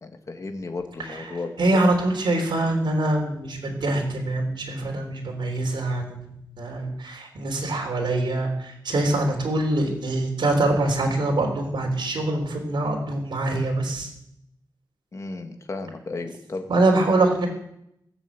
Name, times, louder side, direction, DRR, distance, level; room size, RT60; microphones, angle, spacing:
voice 1, 0.0-1.5 15.1-16.7, left 3 dB, 40° left, 5 dB, 1.8 m, -34 dB
voice 2, 1.0-14.1 16.7-17.5, right 2 dB, 70° right, 0 dB, 3.6 m, -24 dB
18.0 x 8.1 x 8.2 m, 0.77 s
wide cardioid pair, 170°, 8 cm